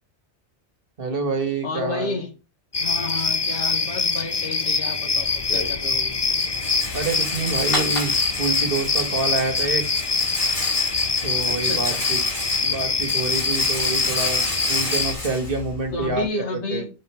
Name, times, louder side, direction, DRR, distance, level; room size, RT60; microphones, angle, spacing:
voice 1, 1.0-2.2 6.9-8.1 8.4-9.8 11.2-12.2 12.6-16.2 16.5-16.8, right 3 dB, 55° right, 6 dB, 1.5 m, -27 dB
voice 2, 1.6-2.3 2.8-6.2 11.5-12.0 15.9-16.9, left 2 dB, 80° left, 3 dB, 1.9 m, -31 dB
sound 1, 2.7-15.1, left 4 dB, 25° left, 0.6 m, -24 dB
Rattle, 5.2-16.3, left 2 dB, 55° left, 2.3 m, -31 dB
5.1 x 4.6 x 5.4 m, 0.32 s
omnidirectional pair, 1.2 m